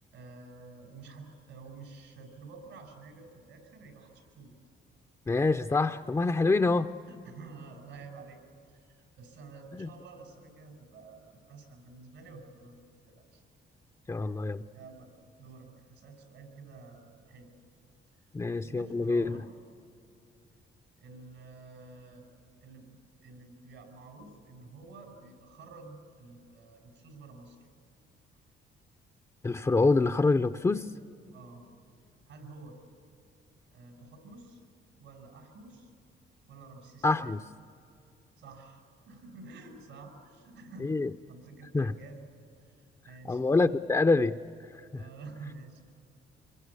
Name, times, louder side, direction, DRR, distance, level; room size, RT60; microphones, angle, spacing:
voice 1, 0.1-4.6 6.8-12.8 13.0-13.4 14.2-14.4 14.7-15.1 15.4-17.5 18.1-18.3 18.6-19.5 21.0-22.3 22.6-23.0 23.2-27.6 31.3-31.7 32.2-32.8 33.7-34.6 35.0-35.9 36.5-37.4 38.4-40.9 41.3-42.2 42.6-43.4 44.9-45.8, right 3 dB, 80° right, 4 dB, 5.3 m, -50 dB
voice 2, 5.3-6.9 9.8-9.9 14.1-14.6 18.3-19.4 29.4-30.9 37.0-37.4 40.8-41.1 41.7-41.9 43.3-44.4, left 3 dB, 15° left, 7 dB, 0.6 m, -26 dB
26.0 x 22.0 x 8.4 m, 2.6 s
cardioid pair, 90°, 20 cm